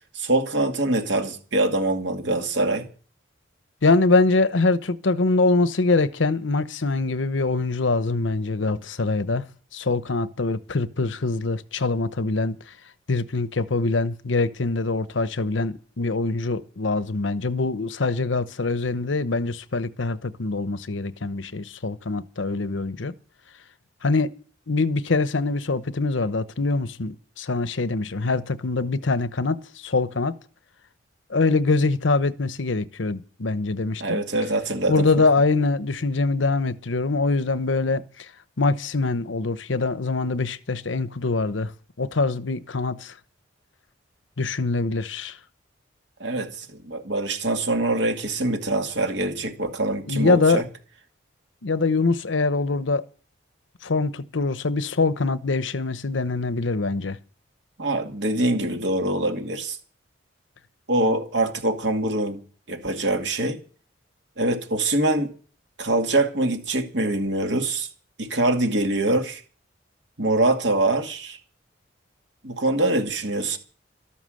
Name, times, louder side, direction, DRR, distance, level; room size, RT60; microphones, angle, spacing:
voice 1, 0.1-2.9 34.0-35.0 46.2-50.6 57.8-59.8 60.9-62.4 62.7-63.6 64.4-65.3 65.8-67.9 68.2-69.4 70.2-71.4 72.4-73.6, right 2 dB, 65° right, 2.3 m, -24 dB
voice 2, 3.8-9.5 9.7-12.6 13.1-23.1 24.0-24.3 24.7-30.3 31.3-34.2 34.9-38.3 38.6-41.7 42.0-43.1 44.4-45.4 50.1-50.6 51.6-53.0 53.8-57.2, left 3 dB, 75° left, 0.9 m, -24 dB
13.0 x 13.0 x 6.5 m
head